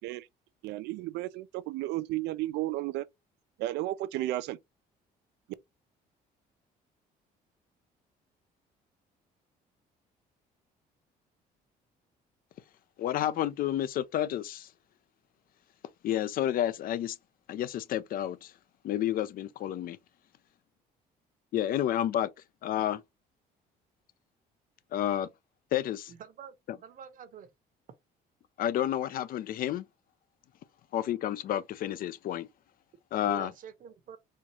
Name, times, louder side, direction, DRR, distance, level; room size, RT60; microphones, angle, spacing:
voice 1, 0.6-3.0 3.6-4.6, right 16 dB, 85° right, 0.4 m, -33 dB
voice 2, 13.0-14.7 16.0-17.2 17.5-18.5 18.8-20.0 21.5-22.3 22.6-23.0 24.9-25.3 25.7-26.1 28.6-29.8 30.9-32.5 33.1-33.5, left 11 dB, 55° left, 0.5 m, -30 dB
voice 3, 26.1-27.5 33.2-34.2, right 8 dB, 55° right, 0.9 m, -46 dB
4.4 x 2.4 x 2.9 m
cardioid pair, 110°, 17 cm